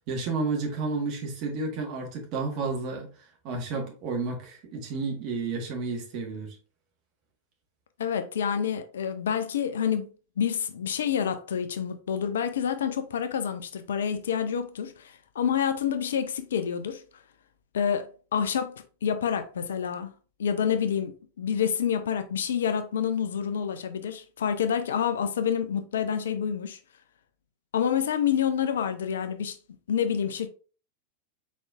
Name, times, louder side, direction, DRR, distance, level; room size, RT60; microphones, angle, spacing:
voice 1, 0.1-3.1 3.4-6.6, right 3 dB, 40° right, 1.5 m, -31 dB
voice 2, 8.0-10.1 10.4-17.0 17.7-18.7 19.0-20.1 20.4-21.1 21.4-26.8 27.7-29.6 29.9-30.5, left 8 dB, 65° left, 0.5 m, -28 dB
4.5 x 4.2 x 2.4 m
figure-of-eight pair, 90°, 0 cm